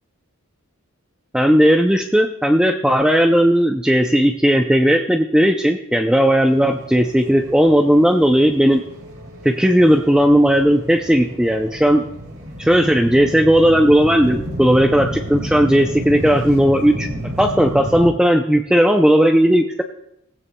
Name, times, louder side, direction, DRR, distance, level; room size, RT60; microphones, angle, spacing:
voice 1, 1.3-8.8 9.4-12.0 12.6-17.1 17.4-19.8, equal, 5° right, 4 dB, 0.4 m, -15 dB
sound 1, 6.5-18.1, equal, 50° right, 2.7 m, -31 dB
18.0 x 15.5 x 2.2 m, 0.79 s
head